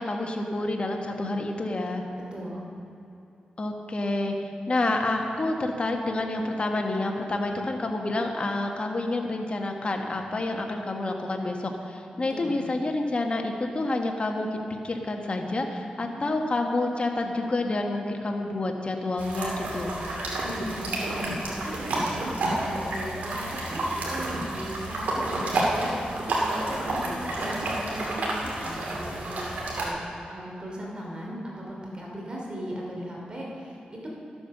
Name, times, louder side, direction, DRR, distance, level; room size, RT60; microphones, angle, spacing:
voice 1, 0.0-2.0 3.6-14.6 14.8-19.9, left 2 dB, 40° left, 2 dB, 1.4 m, -28 dB
voice 2, 2.3-2.7 12.3-12.6 16.1-16.2 20.4-26.1 26.4-30.0 30.3-34.1, equal, 35° right, -3 dB, 2.8 m, -37 dB
sound 1, 19.2-29.9, right 2 dB, 80° right, 2.4 m, -30 dB
12.5 x 8.6 x 6.6 m, 2.8 s
cardioid pair, 80°, 3 cm